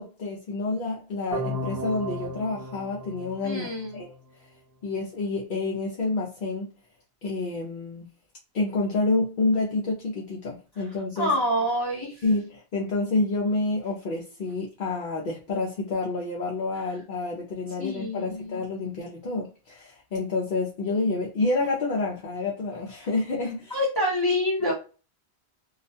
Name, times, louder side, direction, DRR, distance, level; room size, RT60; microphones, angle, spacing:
voice 1, 0.0-4.2 4.8-6.7 7.2-8.1 8.5-11.3 12.2-23.8, left 3 dB, 60° left, 0.7 m, -28 dB
sound 1, 1.3-4.3, right 1 dB, 20° right, 0.6 m, -35 dB
voice 2, 3.4-4.0 11.2-12.2 17.8-18.6 23.7-24.7, left 1 dB, 25° left, 0.9 m, -26 dB
2.3 x 2.2 x 2.6 m
omnidirectional pair, 1.1 m